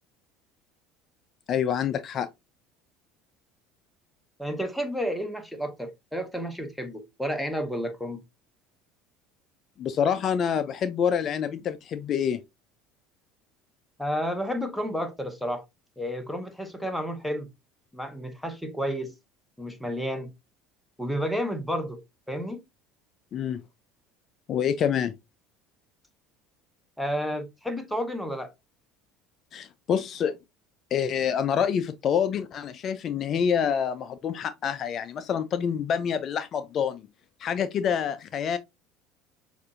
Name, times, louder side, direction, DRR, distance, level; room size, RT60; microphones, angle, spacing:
voice 1, 1.5-2.3 9.8-12.4 23.3-23.6 24.5-25.1 29.5-30.4 30.9-37.0 37.4-38.6, left 8 dB, 45° left, 0.4 m, -27 dB
voice 2, 4.4-8.2 14.0-15.6 16.0-17.5 17.9-19.1 19.6-20.3 21.0-22.0 22.3-22.6 27.0-28.5, equal, 5° left, 1.1 m, -31 dB
6.5 x 2.5 x 2.5 m
hypercardioid pair, 75°, 0 cm